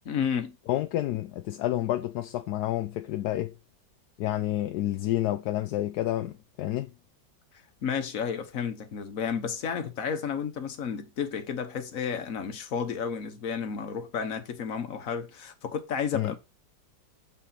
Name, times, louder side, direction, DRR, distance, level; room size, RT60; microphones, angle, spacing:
voice 1, 0.0-0.6 7.8-16.4, left 7 dB, 50° left, 1.5 m, -32 dB
voice 2, 0.7-3.5 4.2-6.9 16.1-16.4, left 14 dB, 70° left, 1.0 m, -29 dB
7.5 x 5.0 x 4.3 m
omnidirectional pair, 2.0 m